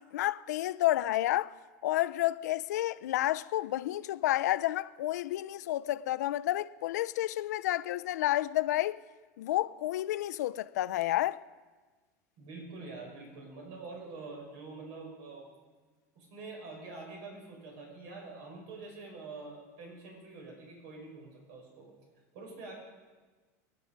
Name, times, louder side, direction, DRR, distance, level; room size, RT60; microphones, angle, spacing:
voice 1, 0.0-1.5 1.8-9.0 9.4-11.4, left 15 dB, 85° left, 0.5 m, -30 dB
voice 2, 12.4-15.5 16.2-21.9 22.3-22.7, right 3 dB, 65° right, 5.4 m, -46 dB
22.0 x 10.5 x 5.1 m
supercardioid pair, 125°, 9 cm